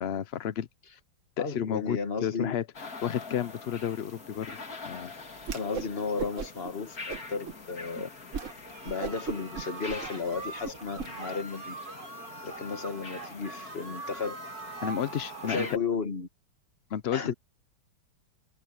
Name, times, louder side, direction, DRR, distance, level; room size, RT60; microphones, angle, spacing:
voice 1, 0.0-0.7 1.4-2.6 3.0-4.6 4.8-5.1 14.8-15.7 16.9-17.3, left 9 dB, 65° left, 0.6 m, -31 dB
voice 2, 1.4-2.6 5.5-8.1 8.8-11.7 12.4-14.4 15.4-16.3 17.1-17.3, left 4 dB, 35° left, 1.6 m, -34 dB
sound 1, 2.7-15.8, left 3 dB, 50° left, 3.2 m, -44 dB
Whoosh swoosh swish, 5.4-5.9 6.2-6.7 7.1-7.6 7.9-8.0 8.3-8.5 8.8-11.1, right 6 dB, 45° right, 1.3 m, -37 dB
Cry for help- Collective, 8.3-15.7, right 4 dB, 75° right, 3.7 m, -43 dB
omnidirectional pair, 2.0 m